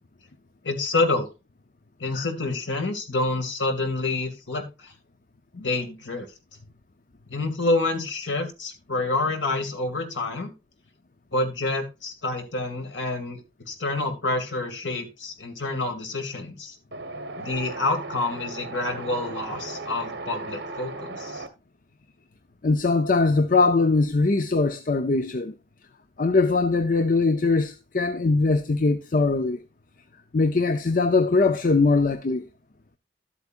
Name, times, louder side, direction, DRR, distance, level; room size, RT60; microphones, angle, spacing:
voice 1, 0.6-1.3 2.0-4.9 5.5-6.3 7.3-10.5 11.3-13.4 13.7-16.8 17.4-21.4, left 2 dB, 90° left, 2.3 m, -28 dB
Wind, 16.9-21.5, right 2 dB, 60° right, 1.4 m, -36 dB
voice 2, 22.6-25.5 26.2-29.6 30.3-32.5, left 3 dB, 45° left, 0.6 m, -21 dB
13.0 x 8.2 x 2.5 m
head